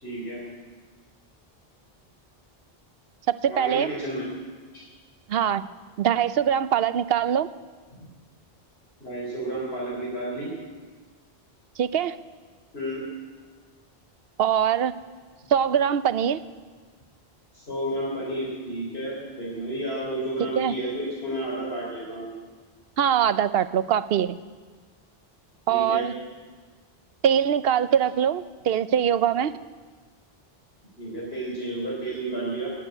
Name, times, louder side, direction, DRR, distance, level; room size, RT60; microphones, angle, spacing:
voice 1, 0.0-0.4 3.5-4.3 9.0-10.5 12.7-13.0 17.5-22.3 25.7-26.1 31.0-32.7, right 1 dB, 80° left, -5 dB, 3.9 m, -31 dB
voice 2, 3.3-3.9 5.3-5.6 6.0-7.5 11.8-12.2 14.4-14.9 15.5-16.4 20.6-20.7 23.0-24.4 25.7-26.1 27.2-29.5, right 9 dB, 75° right, 14 dB, 0.9 m, -22 dB
16.0 x 9.0 x 9.8 m, 1.5 s
omnidirectional pair, 1.0 m